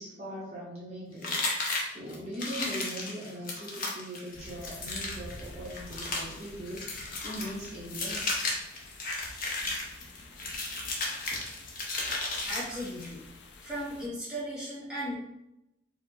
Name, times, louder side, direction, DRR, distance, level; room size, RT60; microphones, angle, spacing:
voice 1, 0.0-1.6 1.9-8.5, equal, 35° right, -7 dB, 1.2 m, -40 dB
sound 1, 1.2-13.1, left 2 dB, 50° left, 0.9 m, -34 dB
sound 2, 4.3-14.1, left 2 dB, 65° left, 0.5 m, -49 dB
voice 2, 12.5-13.3 13.6-15.2, equal, 5° right, -10 dB, 1.6 m, -36 dB
4.7 x 2.7 x 3.8 m, 0.87 s
head